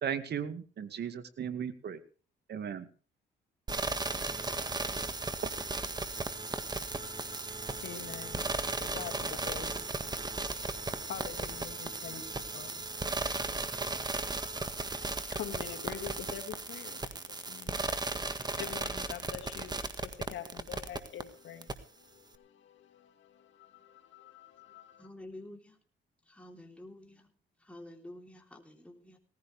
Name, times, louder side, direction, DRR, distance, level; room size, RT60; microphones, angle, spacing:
voice 1, 0.0-2.0 2.5-2.9, right 8 dB, 55° right, 11 dB, 2.0 m, -36 dB
sound 1, 3.7-21.2 21.6-21.7, right 3 dB, 20° right, 1.6 m, -36 dB
voice 2, 7.0-25.1, left 9 dB, 70° left, 4 dB, 2.7 m, -47 dB
voice 3, 25.0-25.8 26.3-27.3 27.6-29.2, left 1 dB, 5° left, 2 dB, 3.4 m, -49 dB
18.0 x 15.5 x 3.4 m, 0.38 s
cardioid pair, 90°, 20 cm